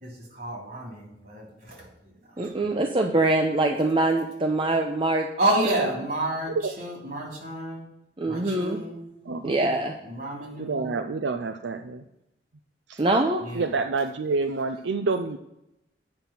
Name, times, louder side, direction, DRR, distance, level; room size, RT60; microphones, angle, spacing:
voice 1, 0.0-1.9 2.4-2.5 5.4-7.9 8.3-9.0 10.0-10.9 13.4-13.7, right 1 dB, 55° right, -1 dB, 3.1 m, -30 dB
voice 2, 2.4-5.3 5.7-5.8 8.2-8.8 9.4-9.9 13.0-13.4, right 2 dB, 30° right, 3 dB, 0.6 m, -24 dB
voice 3, 10.6-12.0 12.9-13.0 13.5-15.4, right 4 dB, 80° right, 8 dB, 0.5 m, -28 dB
8.9 x 5.6 x 7.4 m, 0.88 s
head